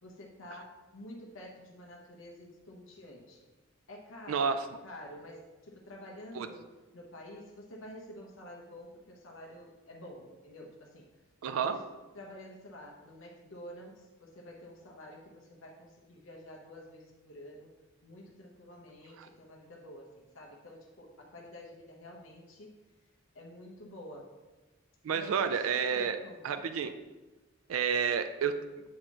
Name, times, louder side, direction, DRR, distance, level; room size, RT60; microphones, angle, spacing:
voice 1, 0.0-3.5 3.9-6.7 6.9-11.1 11.6-11.8 12.1-17.7 18.0-22.7 23.3-24.3 25.1-26.6, left 1 dB, 70° left, -1 dB, 0.9 m, -49 dB
voice 2, 11.4-11.8 19.2-19.3 25.0-26.2 26.4-26.9 27.7-28.6, right 6 dB, 80° right, 9 dB, 0.4 m, -30 dB
8.3 x 3.0 x 4.4 m, 1.2 s
head